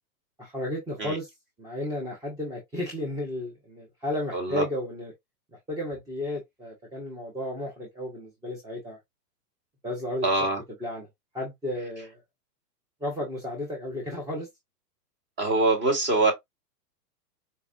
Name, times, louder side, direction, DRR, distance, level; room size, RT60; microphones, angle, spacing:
voice 1, 0.4-1.3 1.6-5.1 5.7-9.0 9.8-10.3 10.8-11.1 11.3-12.2 13.0-14.5, left 1 dB, 10° right, 0.7 m, -33 dB
voice 2, 4.3-4.7 10.2-10.6 15.4-16.3, right 2 dB, 25° right, 1.4 m, -23 dB
4.4 x 2.3 x 2.5 m
hypercardioid pair, 135°, 49 cm